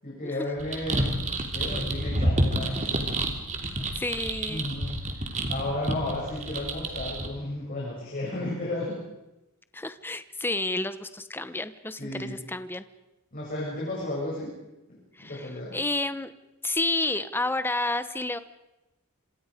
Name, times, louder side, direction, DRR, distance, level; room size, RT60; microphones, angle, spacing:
voice 1, 0.0-1.2 1.5-3.3 4.5-9.0 12.0-12.4 13.3-14.5 14.9-15.8, left 1 dB, 40° left, -5 dB, 7.4 m, -33 dB
sound 1, 0.6-7.3, right 1 dB, 35° right, 3.1 m, -29 dB
voice 2, 3.6-4.6 9.7-12.8 15.1-16.3 16.6-18.4, left 2 dB, 10° left, 11 dB, 1.0 m, -30 dB
27.0 x 26.5 x 5.2 m, 0.99 s
head